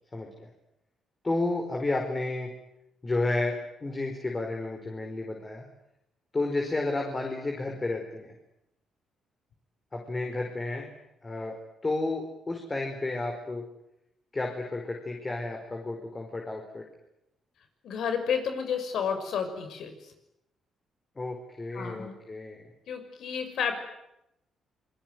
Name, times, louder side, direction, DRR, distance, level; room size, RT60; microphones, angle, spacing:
voice 1, 0.1-0.5 1.2-2.5 3.0-5.7 6.3-8.3 9.9-10.9 11.2-11.5 11.8-13.6 14.3-16.8 21.1-22.6, left 2 dB, 25° left, 2 dB, 5.0 m, -31 dB
voice 2, 17.8-19.9 21.7-22.1 22.9-23.7, left 7 dB, 70° left, 7 dB, 6.1 m, -31 dB
27.5 x 21.5 x 9.5 m, 0.86 s
cardioid pair, 90°, 0 cm